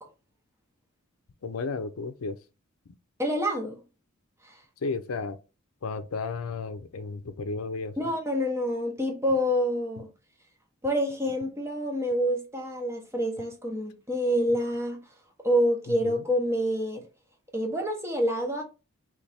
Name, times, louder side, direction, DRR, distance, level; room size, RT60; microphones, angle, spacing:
voice 1, 1.4-2.4 4.8-5.4 5.8-8.0 15.9-16.2, left 4 dB, 80° left, 0.5 m, -33 dB
voice 2, 3.2-3.8 4.4-4.6 8.0-10.1 10.8-15.0 15.4-17.1 17.5-18.6, equal, 10° right, 0.9 m, -27 dB
3.3 x 3.1 x 4.1 m
head